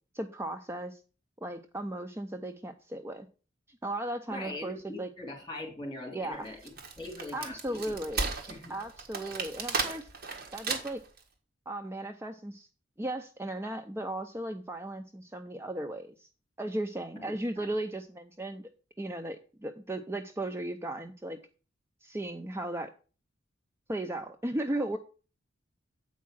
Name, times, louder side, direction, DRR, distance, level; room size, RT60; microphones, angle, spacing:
voice 1, 0.1-1.0 1.4-3.3 3.7-5.1 6.1-6.5 7.3-8.3 8.7-10.1 10.5-11.0 11.7-12.7 13.0-16.3 16.6-18.7 19.0-21.4 22.0-22.9 23.9-25.0, right 1 dB, 15° right, 6 dB, 0.5 m, -36 dB
voice 2, 4.3-6.6 7.0-8.0 8.5-8.7 17.2-17.3 17.6-17.7, left 1 dB, 25° left, 2 dB, 3.2 m, -41 dB
Wood, 6.5-11.2, right 4 dB, 50° right, 1.6 m, -35 dB
8.3 x 4.7 x 6.1 m, 0.36 s
head